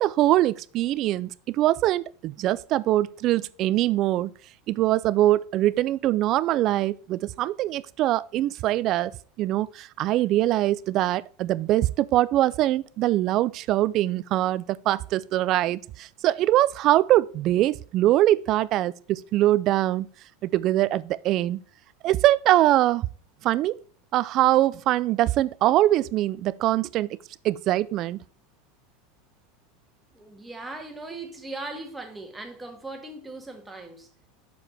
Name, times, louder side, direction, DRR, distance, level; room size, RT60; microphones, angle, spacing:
voice 1, 0.0-4.3 4.7-20.1 20.4-21.6 22.0-23.1 23.4-23.8 24.1-27.2 27.4-28.2, right 14 dB, 50° right, 0.3 m, -23 dB
voice 2, 30.1-34.1, right 2 dB, 10° right, 1.8 m, -39 dB
6.9 x 6.4 x 4.1 m
hypercardioid pair, 105°, 0 cm